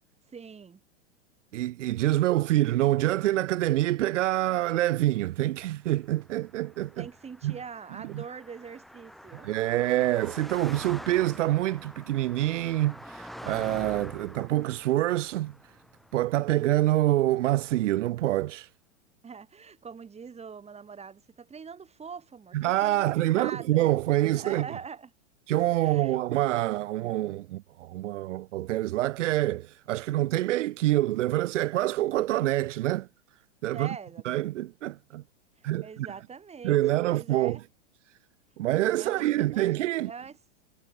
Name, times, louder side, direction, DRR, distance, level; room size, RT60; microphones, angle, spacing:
voice 1, 0.3-0.8 7.0-9.5 19.2-23.9 24.3-25.1 25.8-26.2 33.7-34.3 35.6-37.6 38.9-40.4, right 6 dB, 15° right, 7.3 m, -43 dB
voice 2, 1.5-7.0 7.4-7.5 8.1-8.2 9.4-15.5 16.1-18.7 22.5-24.7 25.5-33.1 33.6-33.9 34.2-35.2 35.6-36.1 36.6-37.6 38.6-40.1, right 15 dB, 75° right, 0.8 m, -26 dB
Car passing by, 6.0-17.5, equal, ahead, 4.0 m, -46 dB
hypercardioid pair, 120°, 37 cm